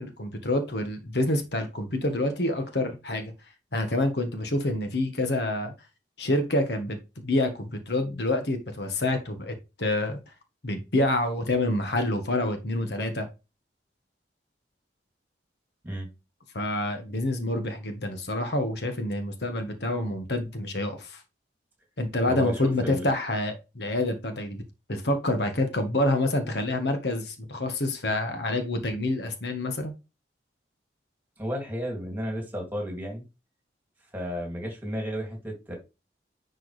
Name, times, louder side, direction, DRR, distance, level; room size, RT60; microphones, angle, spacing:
voice 1, 0.0-3.3 3.7-5.7 6.2-10.2 10.6-13.3 16.5-21.2 22.0-24.6 24.9-29.9, left 1 dB, 70° left, 1.3 m, -27 dB
voice 2, 22.3-23.1 31.4-33.2 34.1-35.7, equal, 10° right, 2.6 m, -33 dB
10.0 x 4.6 x 3.3 m
head